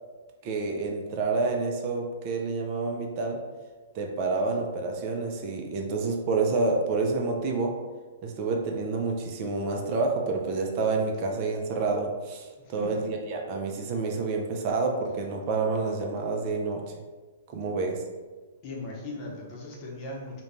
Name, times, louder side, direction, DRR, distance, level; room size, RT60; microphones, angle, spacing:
voice 1, 0.4-3.4 3.9-7.7 8.2-16.9 17.5-18.0, right 3 dB, 45° right, 1 dB, 0.4 m, -28 dB
voice 2, 18.6-20.4, left 2 dB, 40° left, -2 dB, 0.7 m, -38 dB
2.5 x 2.1 x 3.1 m, 1.3 s
hypercardioid pair, 125°, 0 cm